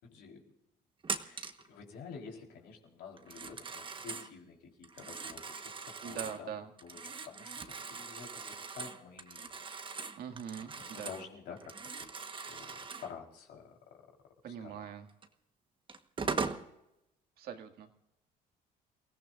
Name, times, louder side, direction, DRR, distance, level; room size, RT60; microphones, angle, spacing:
voice 1, 0.0-0.5 1.2-6.5 6.8-10.0 10.8-14.8, left 6 dB, 75° left, 0 dB, 4.1 m, -50 dB
Telephone, 1.0-1.7 3.2-4.3 4.8-6.4 6.8-11.3 11.6-13.1 15.2-15.3 15.9-16.6, right 5 dB, 30° right, 1.3 m, -40 dB
voice 2, 6.0-6.7 10.2-11.1 14.4-15.1 17.4-17.9, right 8 dB, 65° right, 5 dB, 2.0 m, -42 dB
29.5 x 17.0 x 2.6 m, 0.87 s
cardioid pair, 110°, 17 cm